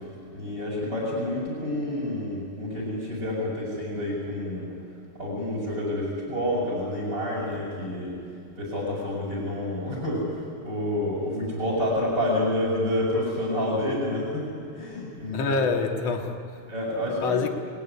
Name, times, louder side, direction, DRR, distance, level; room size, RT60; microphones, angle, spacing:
voice 1, 0.0-4.7 5.1-8.2 8.6-14.5 14.7-15.6 16.7-17.4, left 1 dB, 30° right, 6.7 m, -28 dB
voice 2, 15.3-16.6 17.0-17.5, left 4 dB, 50° left, 2.6 m, -27 dB
30.0 x 20.0 x 9.8 m
omnidirectional pair, 4.1 m